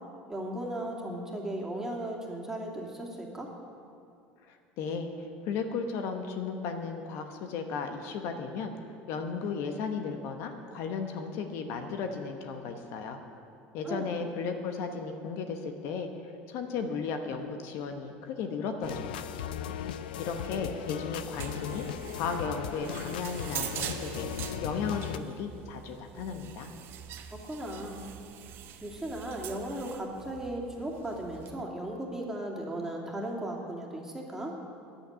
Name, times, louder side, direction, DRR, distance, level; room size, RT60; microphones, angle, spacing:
voice 1, 0.3-3.5 13.8-14.1 27.5-28.1 28.8-34.5, right 1 dB, 10° right, -2 dB, 2.6 m, -36 dB
voice 2, 4.5-8.7 9.1-13.2 13.7-16.1 16.5-19.5 20.2-21.8 22.1-24.3 24.6-26.7, left 5 dB, 65° left, 6 dB, 1.1 m, -35 dB
sound 1, 18.8-25.2, left 10 dB, 90° left, 0.5 m, -37 dB
sound 2, 20.9-31.6, right 10 dB, 55° right, 1.0 m, -43 dB
10.0 x 8.9 x 8.8 m, 2.5 s
supercardioid pair, 90°, 5 cm